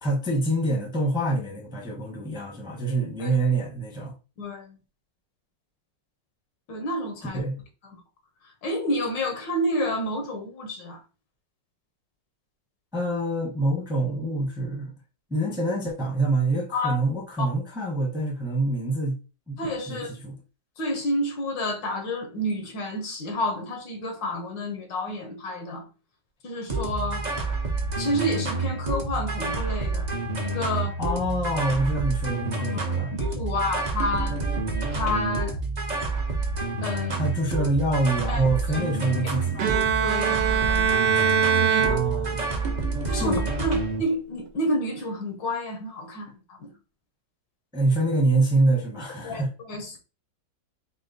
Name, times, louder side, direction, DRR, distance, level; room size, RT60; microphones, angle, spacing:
voice 1, 0.0-4.1 7.3-7.6 12.9-14.9 15.3-19.2 19.5-19.6 19.9-20.4 31.0-33.1 37.1-39.7 41.8-42.4 43.2-43.4 47.7-49.5, right 2 dB, 5° right, 0.7 m, -26 dB
voice 2, 4.4-4.8 6.7-7.4 7.9-8.0 8.6-11.0 16.7-17.0 17.4-17.5 19.6-20.1 20.8-25.9 26.4-27.3 28.0-30.1 30.4-30.9 32.7-32.8 33.1-34.4 34.9-35.6 36.8-37.2 38.3-38.4 38.7-38.9 39.6-39.7 40.0-40.9 41.5-42.0 43.1-46.7 49.2-50.0, left 1 dB, 75° left, 1.7 m, -29 dB
sound 1, 26.7-44.0, right 3 dB, 40° right, 0.6 m, -28 dB
Bowed string instrument, 39.6-42.7, right 8 dB, 70° right, 1.2 m, -23 dB
4.5 x 2.2 x 4.0 m
omnidirectional pair, 2.0 m